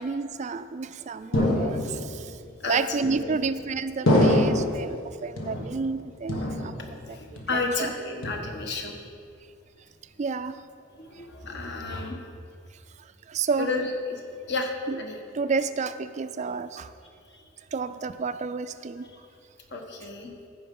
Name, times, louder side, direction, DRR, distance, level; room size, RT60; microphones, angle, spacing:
voice 1, 0.0-2.3 2.7-6.7 7.5-7.9 10.2-10.6 13.3-13.7 14.9-15.0 15.3-16.9 17.7-19.1, right 4 dB, 35° right, 12 dB, 0.3 m, -30 dB
sound 1, 1.3-2.2 3.0-3.5 4.1-4.9 5.4-6.0 6.3-7.1 7.4-7.8 8.2-8.8, left 1 dB, 85° left, 1.5 m, -25 dB
voice 2, 6.8-8.9 10.9-12.2 13.6-14.2 14.5-14.7 15.0-15.2 17.3-17.4 19.0-19.2 19.7-20.3, left 3 dB, 60° left, 2 dB, 1.2 m, -32 dB
14.5 x 5.2 x 5.3 m, 2.4 s
head